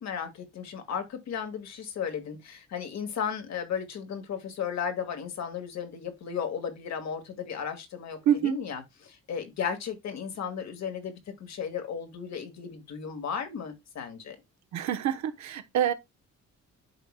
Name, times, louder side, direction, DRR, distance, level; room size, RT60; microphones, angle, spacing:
voice 1, 0.0-14.4, left 7 dB, 65° left, 1.9 m, -35 dB
voice 2, 8.3-8.6 14.7-15.9, right 10 dB, 70° right, 1.0 m, -26 dB
11.5 x 4.7 x 2.2 m
cardioid pair, 105°, 29 cm